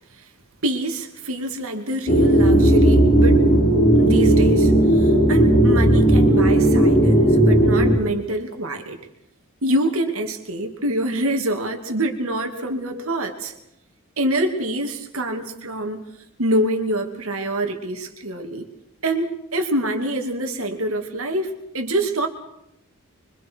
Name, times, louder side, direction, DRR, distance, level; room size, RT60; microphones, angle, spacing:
voice 1, 0.6-3.5 4.0-9.0 9.6-13.5 14.2-16.0 16.4-18.7 19.0-22.3, right 1 dB, 65° right, 4 dB, 2.7 m, -25 dB
sound 1, 2.1-8.0, right 1 dB, 35° left, 4.5 m, -15 dB
27.0 x 24.0 x 4.8 m, 0.79 s
head